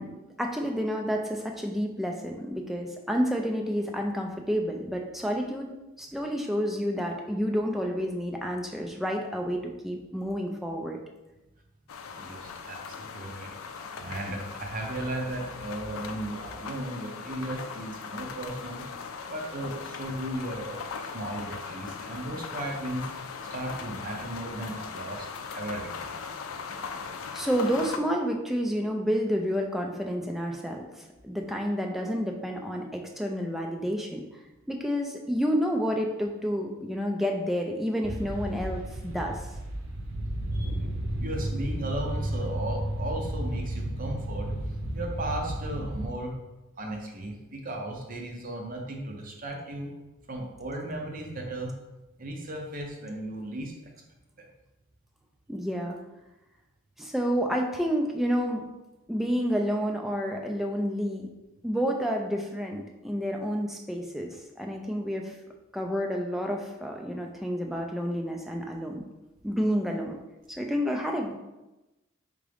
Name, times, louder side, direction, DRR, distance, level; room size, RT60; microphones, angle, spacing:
voice 1, 0.0-11.0 27.3-34.3 34.7-39.4 55.5-56.0 57.0-58.6 59.1-61.3 61.6-65.4 65.7-69.0 69.4-70.2 70.6-71.3, equal, ahead, 1 dB, 0.4 m, -29 dB
sound 1, 11.9-28.0, left 5 dB, 85° left, 0.4 m, -39 dB
voice 2, 12.2-13.5 13.9-18.9 19.3-23.1 23.4-26.1 40.5-40.8 41.2-46.4 46.8-49.9 50.3-51.8 52.2-53.7 54.4-54.5, right 1 dB, 40° right, 1 dB, 0.7 m, -36 dB
sound 2, 38.0-46.1, right 1 dB, 90° right, 0.6 m, -33 dB
3.7 x 3.6 x 3.4 m, 1.0 s
head